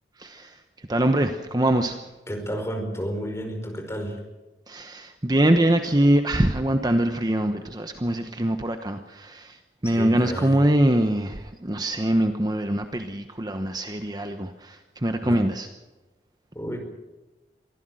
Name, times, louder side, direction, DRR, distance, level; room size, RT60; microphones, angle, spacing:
voice 1, 0.2-2.1 4.7-15.7, right 1 dB, 25° right, 7 dB, 1.0 m, -23 dB
voice 2, 2.3-4.2 9.8-10.6 15.2-15.4 16.5-16.8, equal, 15° left, 4 dB, 5.0 m, -31 dB
24.0 x 15.5 x 7.8 m, 1.1 s
head